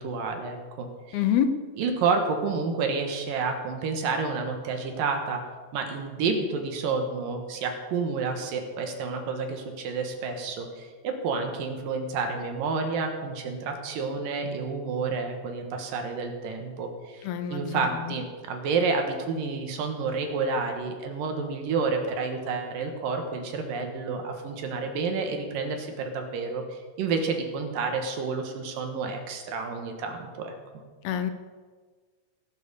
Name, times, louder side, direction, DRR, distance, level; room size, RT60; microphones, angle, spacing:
voice 1, 0.0-1.2 1.8-5.4 5.7-30.5, right 4 dB, 70° right, 4 dB, 2.9 m, -30 dB
voice 2, 1.1-1.5 17.3-17.8 31.0-31.3, left 10 dB, 90° left, 8 dB, 2.9 m, -26 dB
17.0 x 6.7 x 6.8 m, 1.5 s
omnidirectional pair, 4.3 m